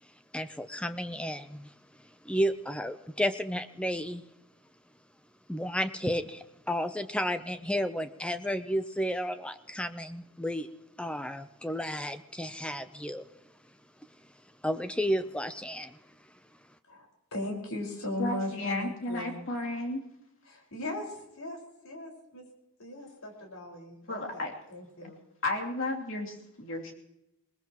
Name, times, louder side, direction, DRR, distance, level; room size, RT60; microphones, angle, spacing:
voice 1, 0.0-1.7 2.0-4.2 5.5-10.7 11.0-13.3 14.6-16.0, equal, 5° left, 10 dB, 0.5 m, -32 dB
voice 2, 16.9-19.4 20.4-21.6 21.8-22.4 22.8-24.4 24.7-25.2, left 1 dB, 75° left, 0 dB, 5.0 m, -38 dB
voice 3, 18.2-20.0 24.1-24.5 25.0-25.1 25.4-26.9, left 2 dB, 60° left, 0 dB, 2.9 m, -33 dB
21.0 x 20.5 x 3.0 m, 0.87 s
head